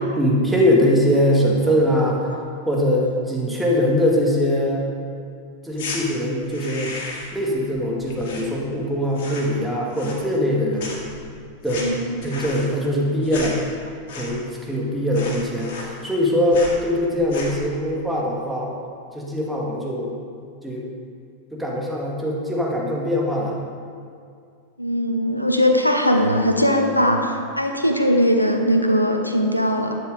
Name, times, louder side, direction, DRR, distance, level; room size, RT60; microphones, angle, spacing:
voice 1, 0.2-2.3 2.7-4.9 5.6-6.9 7.3-11.0 11.6-11.9 12.2-13.6 14.1-18.7 19.1-20.1 20.6-20.8 21.5-23.5, equal, 5° right, -3 dB, 2.1 m, -22 dB
sound 1, 5.7-6.0 6.4-7.4 7.7-8.8 9.1-9.6 9.9-10.5 10.8-14.6 14.8-14.9 15.1-16.2 16.5-16.8 17.2-17.7, left 3 dB, 50° left, 2.2 m, -35 dB
voice 2, 11.8-12.1 24.8-30.0, equal, 90° left, 4 dB, 0.9 m, -20 dB
12.0 x 8.1 x 5.1 m, 2.3 s
figure-of-eight pair, 90°, 0 cm